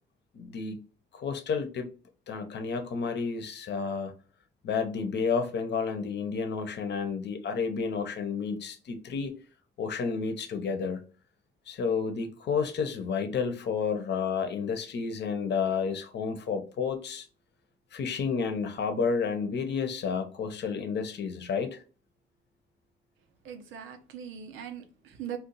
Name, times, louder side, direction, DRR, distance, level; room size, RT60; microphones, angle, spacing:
voice 1, 0.3-0.8 1.1-1.9 2.3-4.1 4.6-9.3 9.8-11.0 11.7-17.3 17.9-21.8, left 5 dB, 60° left, 0.8 m, -31 dB
voice 2, 23.4-25.4, right 9 dB, 85° right, 0.7 m, -40 dB
2.6 x 2.4 x 3.9 m
cardioid pair, 90°, 20 cm